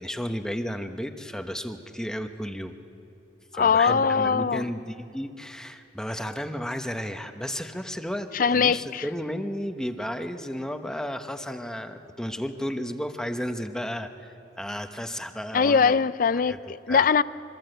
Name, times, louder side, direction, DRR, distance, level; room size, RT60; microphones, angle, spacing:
voice 1, 0.0-2.8 3.5-15.9 16.5-16.6 16.9-17.1, equal, 5° left, 0.9 m, -33 dB
voice 2, 3.5-4.7 8.3-9.0 15.5-17.2, left 6 dB, 50° left, 0.5 m, -21 dB
25.5 x 24.0 x 7.9 m
head